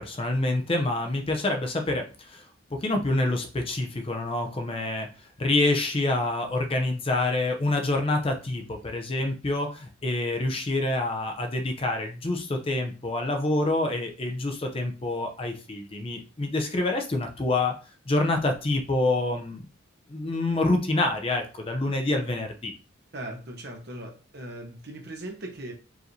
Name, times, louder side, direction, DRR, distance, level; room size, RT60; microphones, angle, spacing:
voice 1, 0.0-2.5 2.8-5.1 5.4-17.7 18.1-19.6 20.1-22.7, left 2 dB, 25° left, 4 dB, 0.5 m, -27 dB
voice 2, 23.1-25.7, right 1 dB, 55° right, 2 dB, 1.0 m, -39 dB
4.7 x 3.1 x 2.6 m, 0.34 s
head